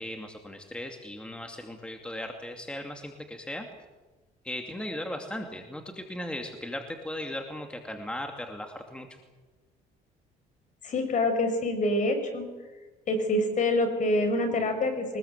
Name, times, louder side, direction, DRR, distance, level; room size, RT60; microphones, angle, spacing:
voice 1, 0.0-3.7 4.4-9.2, left 1 dB, 5° left, 4 dB, 2.5 m, -37 dB
voice 2, 10.8-12.5 13.1-15.2, left 2 dB, 50° left, 7 dB, 6.4 m, -26 dB
24.5 x 20.5 x 8.2 m, 1.2 s
cardioid pair, 110°, 17 cm